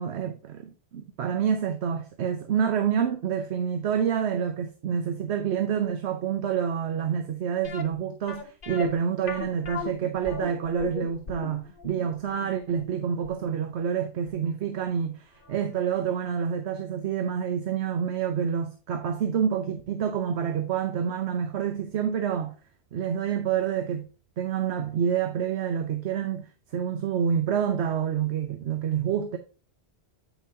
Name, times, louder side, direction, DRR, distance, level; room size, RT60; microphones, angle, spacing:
voice 1, 0.0-22.5 22.9-24.1 24.4-29.4, right 8 dB, 90° right, 1.0 m, -28 dB
sound 1, 7.6-14.5 14.8-14.9 15.4-15.6 15.9-16.0, left 5 dB, 55° left, 1.0 m, -38 dB
8.2 x 5.7 x 2.7 m
omnidirectional pair, 1.1 m